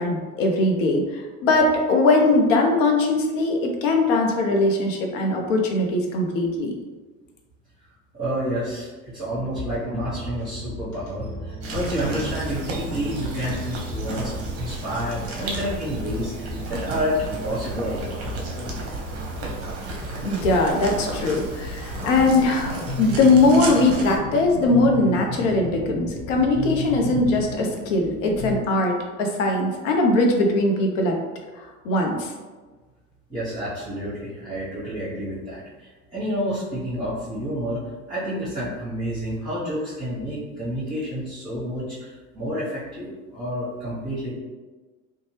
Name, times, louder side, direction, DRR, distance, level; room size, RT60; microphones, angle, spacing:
voice 1, 0.0-6.7 20.2-31.2 31.6-32.3, left 2 dB, 65° left, 2 dB, 0.7 m, -21 dB
voice 2, 8.1-18.5 33.3-37.8 38.1-44.3, equal, 10° right, -10 dB, 1.0 m, -29 dB
sound 1, 9.3-22.3, left 1 dB, 45° left, 1.3 m, -36 dB
sound 2, 11.6-24.2, right 2 dB, 35° right, 0.7 m, -34 dB
sound 3, 21.9-28.6, left 1 dB, 25° left, 0.3 m, -33 dB
2.6 x 2.2 x 3.1 m, 1.3 s
figure-of-eight pair, 70°, 42 cm